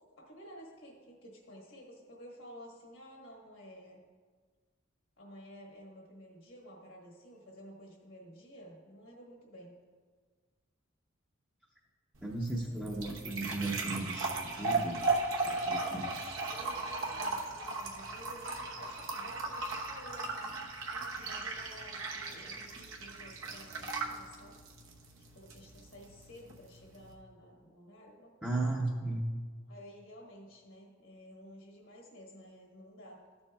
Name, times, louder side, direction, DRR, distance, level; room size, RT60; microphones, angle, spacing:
voice 1, 0.2-4.0 5.2-9.7 15.8-24.6 25.2-28.8 29.7-33.2, equal, 65° left, -1 dB, 1.4 m, -53 dB
sound 1, 12.1-27.1, right 3 dB, 70° right, 1.0 m, -37 dB
voice 2, 12.2-15.1 15.4-16.1 28.4-29.2, right 2 dB, 5° right, -5 dB, 0.7 m, -35 dB
13.5 x 7.0 x 2.3 m, 1.6 s
head